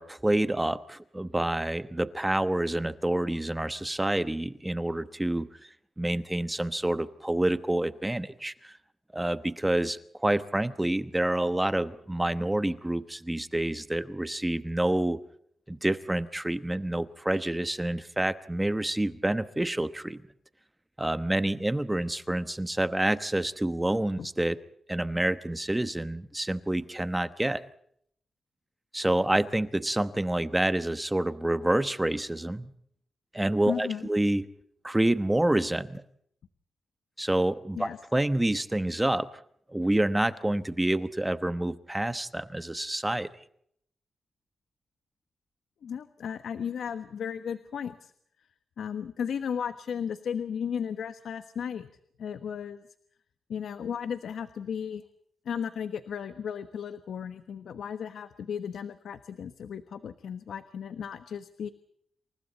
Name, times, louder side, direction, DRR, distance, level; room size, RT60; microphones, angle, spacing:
voice 1, 0.0-5.5 6.0-8.7 9.1-15.2 15.7-20.2 21.0-24.6 24.9-27.6 28.9-32.7 33.3-34.5 34.8-36.0 37.2-39.3 39.7-43.3, right 1 dB, 10° right, 12 dB, 1.0 m, -28 dB
voice 2, 33.7-34.1 37.8-38.0 45.8-48.1 48.8-51.9 52.2-52.8 53.5-55.0 55.4-61.7, left 7 dB, 80° left, 11 dB, 1.2 m, -35 dB
28.5 x 28.5 x 4.2 m, 0.68 s
wide cardioid pair, 160°, 0 cm